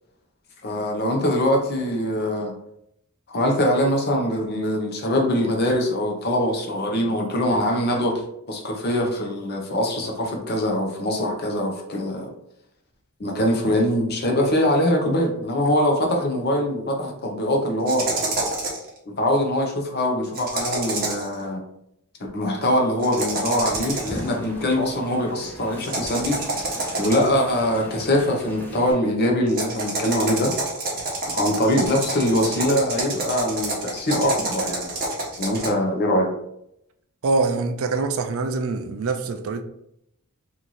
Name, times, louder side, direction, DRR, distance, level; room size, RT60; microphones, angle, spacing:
voice 1, 0.6-2.5 3.3-8.2 8.5-12.3 13.2-18.1 19.1-21.6 22.3-26.4 27.0-30.5 31.3-34.9 35.4-36.3, left 1 dB, 45° left, 0.7 m, -23 dB
sound 1, 17.9-18.9 20.3-21.3 23.0-24.3 25.8-27.4 29.5-35.7, right 2 dB, 40° right, 1.0 m, -28 dB
Wind, 23.6-28.9, right 1 dB, 10° left, 0.7 m, -39 dB
voice 2, 37.2-39.6, right 3 dB, 65° right, 0.4 m, -24 dB
3.0 x 2.6 x 3.9 m
head